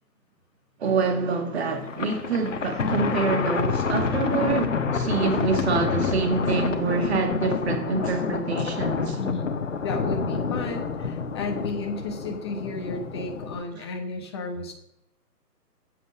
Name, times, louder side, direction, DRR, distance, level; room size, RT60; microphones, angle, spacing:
voice 1, 0.8-9.2, right 4 dB, 40° right, 2.3 m, -26 dB
Thunder, 1.8-13.6, left 5 dB, 50° left, 1.3 m, -28 dB
voice 2, 9.2-9.5 9.8-14.7, left 2 dB, 15° left, 1.1 m, -33 dB
12.5 x 7.9 x 6.7 m
figure-of-eight pair, 155°, 50 cm